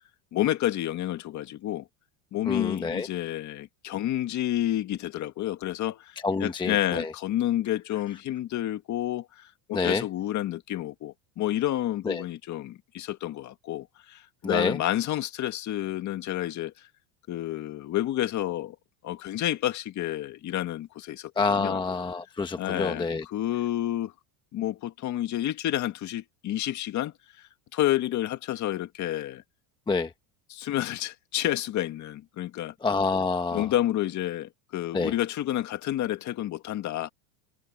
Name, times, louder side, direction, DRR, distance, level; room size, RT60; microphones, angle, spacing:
voice 1, 0.3-1.9 2.3-16.7 17.3-18.8 19.0-21.8 22.6-24.1 24.5-27.1 27.7-29.4 30.5-32.7 33.5-37.1, left 13 dB, 40° left, 2.1 m, -30 dB
voice 2, 2.5-3.1 6.2-7.1 9.7-10.0 12.0-12.2 14.4-14.8 21.4-23.2 29.9-30.1 32.8-33.7 34.9-35.1, left 4 dB, 10° left, 1.0 m, -27 dB
supercardioid pair, 140°, 46 cm